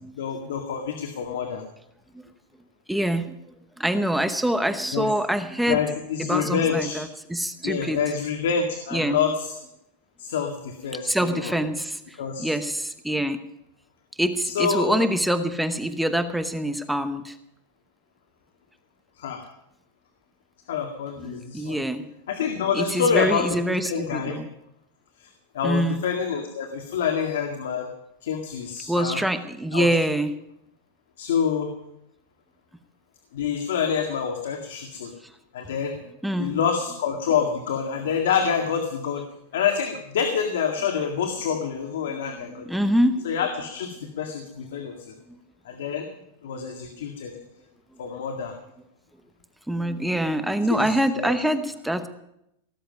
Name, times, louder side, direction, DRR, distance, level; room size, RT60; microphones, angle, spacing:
voice 1, 0.2-1.7 4.9-5.1 5.7-7.0 7.6-9.6 10.2-11.6 12.2-12.5 14.4-15.0 19.2-19.5 20.7-21.8 22.3-24.4 25.2-25.3 25.5-27.9 28.2-29.2 29.7-29.9 31.2-31.7 33.3-35.1 35.5-36.0 36.4-39.2 39.5-42.7 43.2-45.1 45.7-46.1 46.4-47.3 48.0-48.6 50.7-51.3, left 7 dB, 80° left, 5 dB, 2.0 m, -27 dB
voice 2, 2.9-3.3 3.8-5.8 6.2-8.0 8.9-9.2 11.0-12.0 12.4-13.4 14.2-17.4 21.2-22.0 22.7-24.5 25.6-26.0 28.9-30.3 36.2-36.6 42.1-42.3 42.6-43.3 46.6-46.7 49.7-52.1, right 1 dB, ahead, 10 dB, 0.9 m, -25 dB
17.5 x 7.6 x 9.5 m, 0.80 s
supercardioid pair, 155°, 0 cm